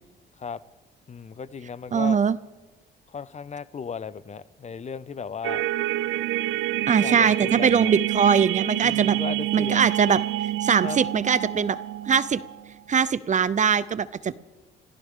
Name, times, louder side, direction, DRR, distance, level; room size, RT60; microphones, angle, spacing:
voice 1, 1.1-2.2 3.1-5.6 7.0-7.9 8.8-9.9 10.8-11.0, left 6 dB, 35° left, 17 dB, 0.6 m, -35 dB
voice 2, 1.9-2.4 6.9-9.2 9.5-10.2 10.6-11.8 12.1-12.4 12.9-14.4, right 6 dB, 40° right, 17 dB, 0.6 m, -21 dB
sound 1, 5.4-12.7, right 15 dB, 90° right, 0.6 m, -27 dB
25.5 x 15.5 x 3.7 m, 1.1 s
cardioid pair, 90°, 20 cm